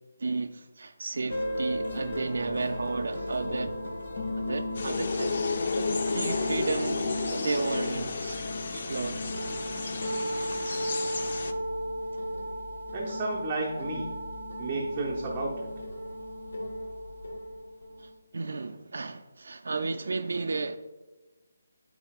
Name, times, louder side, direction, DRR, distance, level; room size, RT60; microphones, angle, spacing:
voice 1, 0.2-3.8 4.4-8.4 8.7-9.3 11.5-11.6 18.0-20.8, right 3 dB, 65° right, 0.3 m, -33 dB
sound 1, 1.3-18.1, left 1 dB, 75° left, 1.4 m, -35 dB
sound 2, 4.7-11.5, left 4 dB, 40° left, 0.4 m, -33 dB
voice 2, 12.9-14.1 14.6-15.7, right 2 dB, 15° right, 0.6 m, -32 dB
11.0 x 4.3 x 2.3 m
hypercardioid pair, 175°, 0 cm